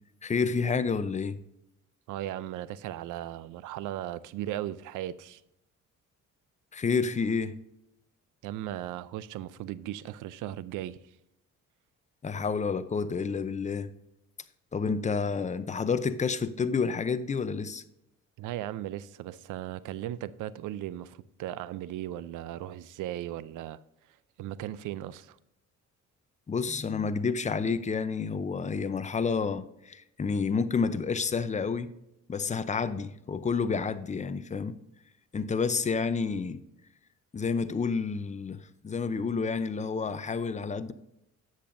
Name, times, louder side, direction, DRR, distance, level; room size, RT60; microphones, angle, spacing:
voice 1, 0.2-1.4 6.7-7.6 12.2-13.9 14.7-17.8 26.5-31.9 32.3-34.8 35.3-36.6 37.3-40.9, left 5 dB, 25° left, 0.6 m, -29 dB
voice 2, 2.1-5.4 8.4-11.0 18.4-23.8 24.4-25.4, right 13 dB, 90° right, 0.5 m, -37 dB
10.5 x 7.7 x 2.6 m
cardioid pair, 90°, 30 cm